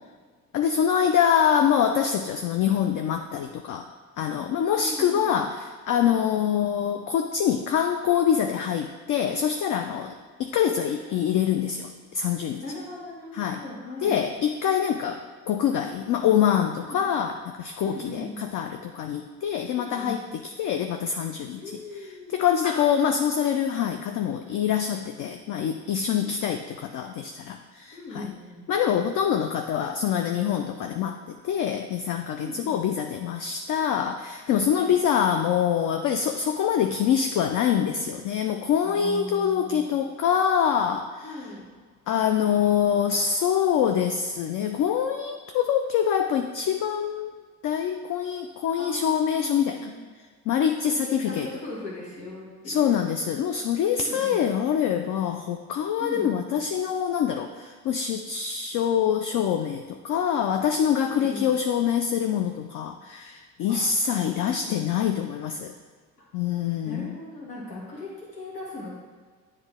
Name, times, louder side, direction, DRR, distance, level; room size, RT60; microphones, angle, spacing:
voice 1, 0.5-3.9 4.2-12.6 13.3-13.6 14.0-28.3 28.7-41.5 42.1-47.3 47.6-49.9 50.5-51.5 52.7-65.7 66.3-67.2, left 8 dB, 40° left, 5 dB, 0.5 m, -25 dB
voice 2, 4.7-5.4 11.0-11.4 12.6-14.2 16.9-17.0 17.8-18.4 19.7-20.2 21.6-22.4 22.6-23.3 26.1-26.5 27.9-28.6 32.4-32.8 34.7-34.9 38.8-39.9 41.2-41.7 48.8-50.0 50.9-52.9 54.0-54.4 56.0-56.5 61.0-61.5 63.7-64.9 66.8-68.9, left 2 dB, 85° left, -5 dB, 1.8 m, -39 dB
9.7 x 3.3 x 3.6 m, 1.5 s
figure-of-eight pair, 50°, 49 cm